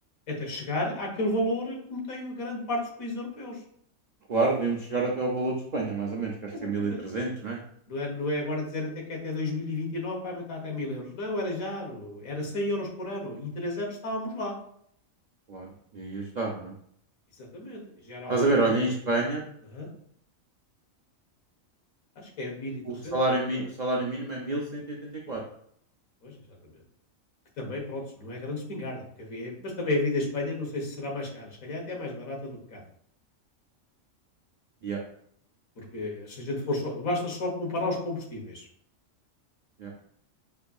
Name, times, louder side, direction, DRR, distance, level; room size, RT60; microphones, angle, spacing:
voice 1, 0.3-3.6 6.5-7.0 7.9-14.6 17.4-18.6 19.7-19.9 22.2-23.1 26.2-26.3 27.6-32.8 35.8-38.7, left 2 dB, 85° left, -1 dB, 1.5 m, -32 dB
voice 2, 4.3-7.6 15.5-16.7 18.3-19.4 22.8-25.4 34.8-35.0 39.8-39.9, right 2 dB, 70° right, -2 dB, 0.4 m, -28 dB
5.2 x 2.6 x 2.3 m, 0.66 s
omnidirectional pair, 1.4 m